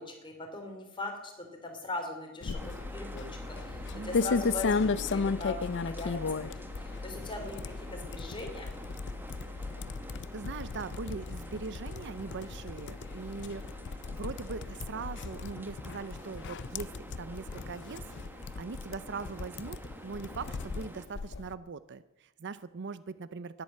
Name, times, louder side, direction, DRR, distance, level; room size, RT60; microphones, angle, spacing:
voice 1, 0.0-8.7, left 2 dB, 25° left, 3 dB, 3.3 m, -41 dB
sound 1, 2.4-21.5, left 4 dB, 60° left, 0.5 m, -36 dB
sound 2, 2.5-21.1, right 1 dB, 10° right, 1.1 m, -48 dB
voice 2, 3.9-4.3 10.3-13.6 14.1-16.9 17.2-18.0 18.6-23.6, right 4 dB, 55° right, 15 dB, 0.6 m, -41 dB
12.0 x 10.5 x 9.0 m, 0.96 s
head